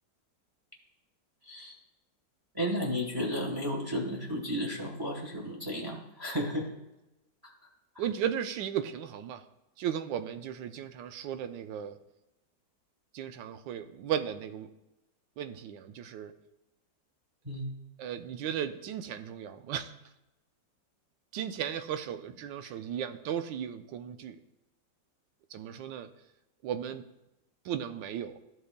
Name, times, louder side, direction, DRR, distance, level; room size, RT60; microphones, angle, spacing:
voice 1, 1.4-1.7 2.5-6.7 17.4-17.7 22.6-22.7, equal, 15° right, -1 dB, 1.2 m, -33 dB
voice 2, 8.0-9.4 9.8-12.0 13.1-14.7 15.4-16.3 18.0-19.9 21.3-24.4 25.5-26.1 26.6-27.0 27.6-28.4, right 9 dB, 85° right, 9 dB, 1.3 m, -35 dB
13.0 x 7.7 x 2.2 m, 0.94 s
omnidirectional pair, 2.0 m